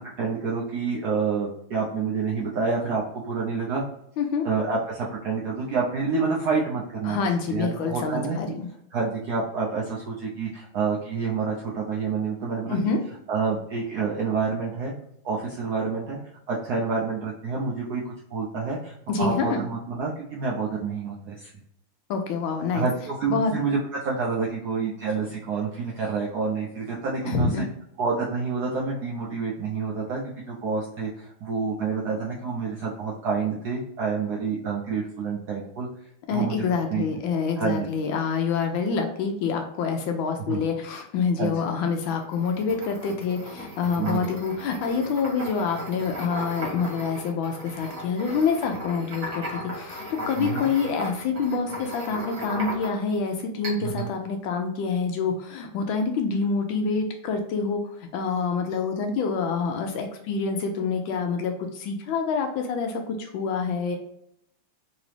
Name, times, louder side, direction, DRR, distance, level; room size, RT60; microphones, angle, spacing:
voice 1, 0.2-3.8 4.4-7.2 7.5-8.4 8.9-12.8 13.3-14.9 15.2-16.2 16.5-18.0 18.3-21.5 22.7-23.8 24.0-27.6 28.0-30.2 30.5-35.9 36.3-36.6 36.9-37.0 37.6-37.9 40.5-40.6 41.4-41.5 44.0-44.3 50.4-50.7 53.8-54.1, right 5 dB, 70° right, -3 dB, 0.9 m, -28 dB
voice 2, 4.2-4.5 7.0-8.7 12.7-13.0 19.1-19.6 22.1-22.9 23.3-23.5 27.2-27.6 36.3-49.4 49.7-64.0, left 5 dB, 75° left, 4 dB, 1.3 m, -27 dB
sound 1, 42.2-53.2 53.6-54.1, equal, 40° right, 1.6 m, -36 dB
4.0 x 2.9 x 3.1 m, 0.74 s
omnidirectional pair, 2.4 m